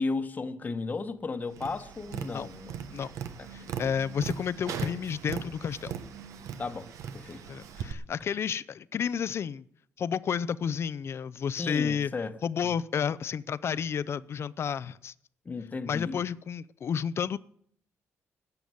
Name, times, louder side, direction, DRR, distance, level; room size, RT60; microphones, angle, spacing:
voice 1, 0.0-2.7 3.4-3.5 6.6-7.5 11.6-12.4 15.4-16.2, left 3 dB, 35° left, 1.1 m, -34 dB
Tap, 1.5-7.9, right 7 dB, 80° right, 1.1 m, -39 dB
voice 2, 3.5-6.0 7.5-9.6 10.0-12.1 12.4-15.1 15.9-17.4, left 7 dB, 55° left, 0.5 m, -31 dB
13.5 x 6.8 x 9.5 m
cardioid pair, 90°, 5 cm